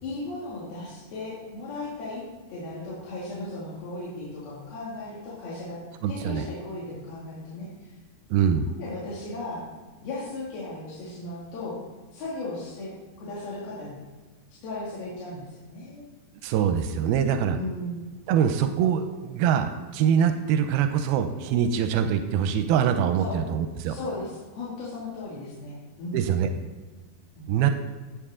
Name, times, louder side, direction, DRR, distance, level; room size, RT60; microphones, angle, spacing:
voice 1, 0.0-2.2 2.5-5.8 6.1-7.9 8.8-9.6 10.0-11.8 12.1-12.9 13.2-14.0 14.6-16.0 17.5-18.0 23.2-23.4 23.9-26.2 27.4-27.5, left 2 dB, 85° left, -8 dB, 4.4 m, -36 dB
voice 2, 6.0-6.4 8.3-8.7 16.4-17.6 18.3-24.0 26.1-26.5 27.5-27.7, right 8 dB, 90° right, 7 dB, 2.5 m, -24 dB
18.5 x 7.7 x 3.7 m, 1.4 s
omnidirectional pair, 4.2 m